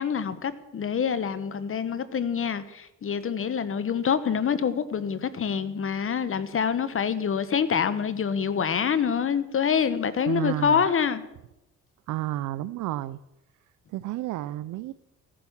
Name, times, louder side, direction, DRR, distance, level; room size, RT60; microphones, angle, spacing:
voice 1, 0.0-11.2, left 7 dB, 45° left, 1.0 m, -26 dB
voice 2, 10.3-10.9 12.1-13.2 13.9-14.9, right 15 dB, 80° right, 0.6 m, -31 dB
16.0 x 8.7 x 7.2 m
cardioid pair, 90°, 30 cm